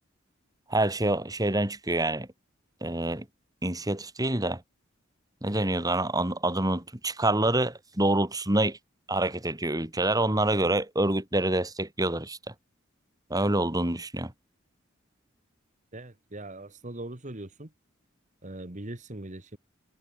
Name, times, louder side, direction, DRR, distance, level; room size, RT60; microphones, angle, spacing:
voice 1, 0.7-2.3 2.8-3.3 3.6-4.6 5.4-8.8 9.1-12.5 13.3-14.3, right 1 dB, 20° right, 3.2 m, -26 dB
voice 2, 15.9-17.7 18.4-19.6, right 1 dB, 35° right, 1.8 m, -40 dB
head